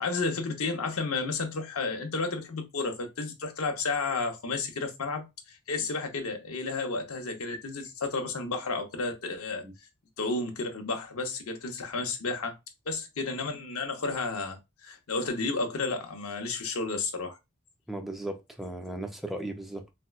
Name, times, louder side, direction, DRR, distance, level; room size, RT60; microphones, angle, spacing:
voice 1, 0.0-9.6 10.2-12.6 12.9-17.4, left 3 dB, 75° left, 0.7 m, -32 dB
voice 2, 17.9-19.9, right 1 dB, ahead, 0.4 m, -36 dB
4.1 x 2.1 x 2.3 m
head